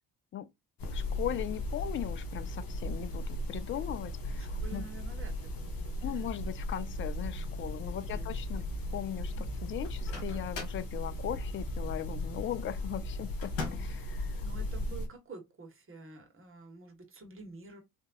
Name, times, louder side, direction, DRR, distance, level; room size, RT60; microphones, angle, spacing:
sound 1, 0.8-15.1, left 1 dB, 45° left, 1.4 m, -36 dB
voice 1, 0.9-4.9 6.0-8.6 8.9-14.4, left 11 dB, 30° left, 0.4 m, -39 dB
voice 2, 4.3-6.2 7.7-8.2 8.5-8.6 9.3-9.4 14.4-17.8, right 3 dB, 25° right, 1.6 m, -49 dB
Microwave oven, 9.8-10.9 13.4-14.0, left 4 dB, 70° left, 1.7 m, -40 dB
3.6 x 2.8 x 2.8 m
hypercardioid pair, 50°, 47 cm